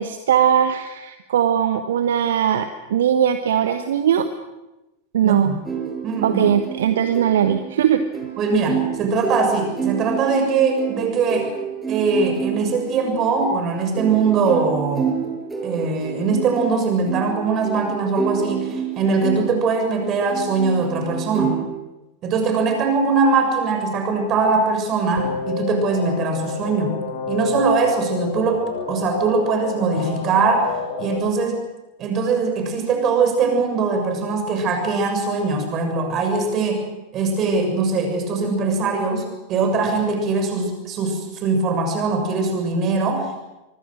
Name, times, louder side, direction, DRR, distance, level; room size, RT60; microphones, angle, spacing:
voice 1, 0.0-4.3 5.1-5.6 6.2-8.0, right 9 dB, 60° right, 9 dB, 1.2 m, -19 dB
sound 1, 5.7-21.7, right 7 dB, 10° right, 6.1 m, -29 dB
voice 2, 6.0-6.4 8.4-11.5 11.9-15.1 15.6-21.5 22.2-27.0 27.3-30.7 31.0-31.6 32.0-36.9 37.1-43.4, right 4 dB, 30° right, 5 dB, 6.8 m, -21 dB
sound 2, 25.2-31.2, left 4 dB, 60° left, 6.8 m, -29 dB
24.5 x 24.5 x 6.4 m, 1.0 s
figure-of-eight pair, 90°, 0 cm